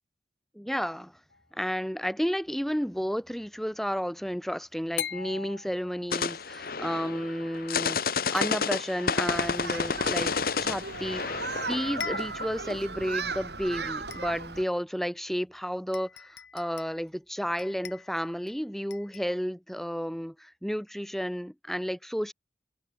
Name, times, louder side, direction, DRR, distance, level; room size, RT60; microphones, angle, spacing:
voice 1, 0.5-1.1 1.5-8.0 8.3-10.3 10.6-11.2 11.7-22.3, equal, ahead, 1.4 m, -32 dB
sound 1, 1.3-1.9 5.0-6.3 8.4-9.2 11.2-11.3 11.7-11.8 12.0-12.6 13.2-13.3 14.1-14.6 15.5-15.6 15.9-17.1 17.6-18.5 18.9-19.4, left 8 dB, 80° left, 5.1 m, -41 dB
sound 2, 6.1-12.4, left 5 dB, 55° left, 1.2 m, -30 dB
Human group actions, 9.2-14.6, right 4 dB, 70° right, 7.2 m, -36 dB
head